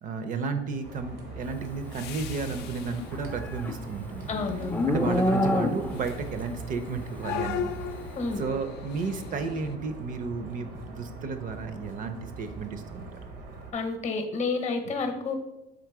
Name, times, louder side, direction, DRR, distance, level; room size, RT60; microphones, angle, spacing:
voice 1, 0.0-4.3 4.9-7.7 8.4-13.1, right 4 dB, 50° right, 9 dB, 0.5 m, -33 dB
sound 1, 0.7-9.8, left 8 dB, 80° left, 0.4 m, -40 dB
sound 2, 0.8-13.7, right 3 dB, 80° right, 0.9 m, -42 dB
Livestock farm animals working animals, 2.9-6.2, left 1 dB, 10° left, 0.4 m, -27 dB
voice 2, 4.3-4.8 8.2-8.4 13.7-15.4, left 4 dB, 40° left, 7 dB, 0.7 m, -30 dB
3.8 x 2.9 x 4.7 m, 0.93 s
cardioid pair, 110°, 17 cm